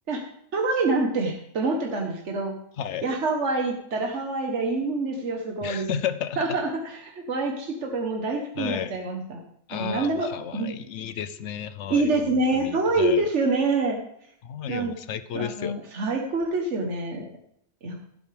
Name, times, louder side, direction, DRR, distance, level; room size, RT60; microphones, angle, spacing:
voice 1, 0.5-2.6 3.0-5.9 6.4-9.4 9.7-10.7 11.9-14.0 14.7-14.9 15.3-17.3 17.8-18.0, right 3 dB, 75° right, 2 dB, 1.6 m, -26 dB
voice 2, 5.6-6.6 8.6-8.9 9.7-13.3 14.4-15.8, left 9 dB, 80° left, 12 dB, 1.0 m, -33 dB
16.0 x 7.9 x 3.4 m, 0.72 s
omnidirectional pair, 1.2 m